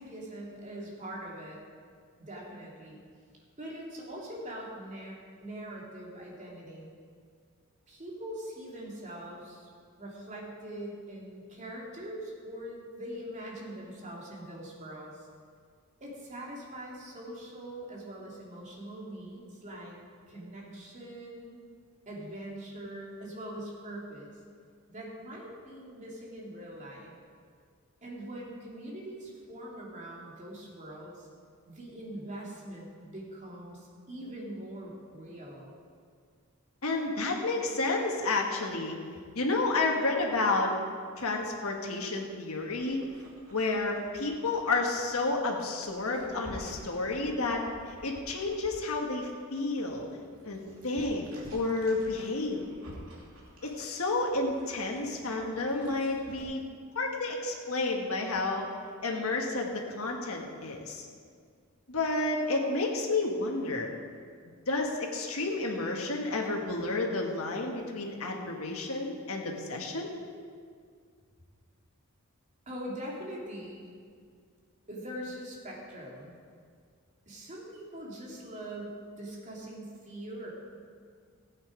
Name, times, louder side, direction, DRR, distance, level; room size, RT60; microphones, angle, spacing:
voice 1, 0.0-1.6 2.2-3.0 3.6-6.9 7.9-9.7 10.0-15.3 16.0-20.0 20.3-21.6 22.1-24.4 24.9-27.1 28.0-31.3 31.7-35.8 72.7-73.9 74.9-76.4 77.3-80.5, right 1 dB, 35° right, -3 dB, 2.7 m, -42 dB
voice 2, 36.8-39.0 39.3-40.8 41.2-43.0 43.5-50.1 50.4-52.6 53.6-56.6 56.9-58.6 59.0-61.1 61.9-63.9 64.7-70.1, left 3 dB, 75° left, 1 dB, 1.6 m, -31 dB
Dog, 42.6-56.4, equal, 80° right, 2.6 m, -51 dB
15.5 x 8.9 x 5.0 m, 2.1 s
head